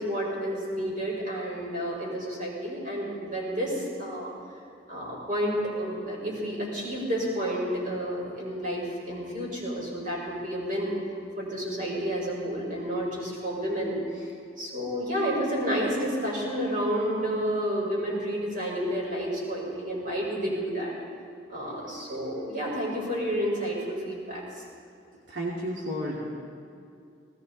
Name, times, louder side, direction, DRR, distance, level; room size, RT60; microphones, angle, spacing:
voice 1, 0.0-4.3 4.9-10.9 11.4-14.3 14.6-20.9 21.5-24.6, equal, 45° right, -4 dB, 5.3 m, -30 dB
voice 2, 25.3-26.2, equal, 85° right, -5 dB, 2.7 m, -32 dB
19.0 x 17.5 x 4.2 m, 2.5 s
head